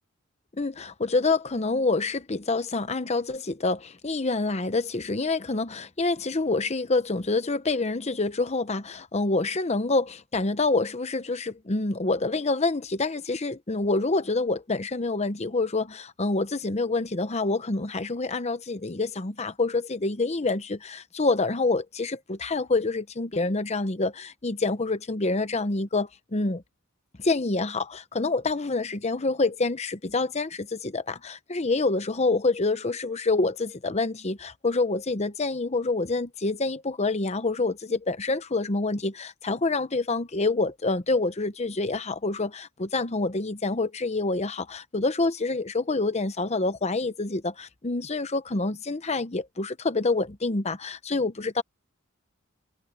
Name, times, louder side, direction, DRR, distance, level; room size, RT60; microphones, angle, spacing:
voice 1, 0.6-26.6 27.2-51.6, left 3 dB, 30° left, 0.9 m, -27 dB
head